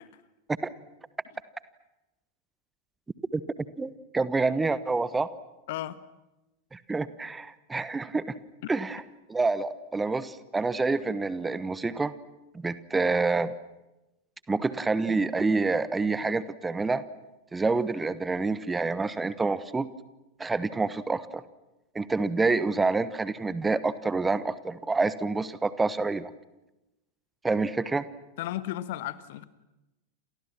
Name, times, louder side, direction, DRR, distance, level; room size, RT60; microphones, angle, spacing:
voice 1, 3.8-5.3 6.7-8.2 8.7-9.0 9.3-12.1 12.5-13.5 14.5-17.0 17.5-19.9 20.4-21.4 21.9-26.3 27.4-28.0, right 3 dB, 10° right, 16 dB, 1.2 m, -27 dB
voice 2, 5.7-6.0 28.4-29.5, left 14 dB, 50° left, 14 dB, 1.5 m, -34 dB
29.5 x 28.5 x 6.1 m, 0.96 s
figure-of-eight pair, 90°, 0 cm